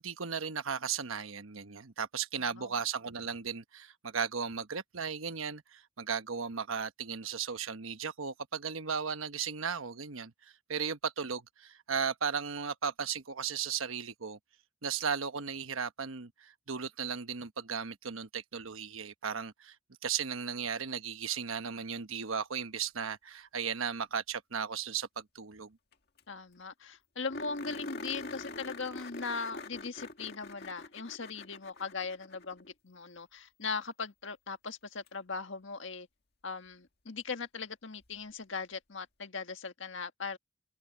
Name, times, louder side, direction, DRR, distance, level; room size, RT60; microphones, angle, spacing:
voice 1, 0.0-14.4 14.8-19.8 20.0-25.8, right 6 dB, 90° right, 1.2 m, -36 dB
voice 2, 2.3-2.7 26.3-36.1 36.4-40.4, left 4 dB, 70° left, 1.6 m, -39 dB
sound 1, 25.9-26.0 26.2-26.3 26.6-26.7 27.3-32.7 35.1-35.2 38.0-38.1, left 2 dB, 50° left, 1.9 m, -44 dB
head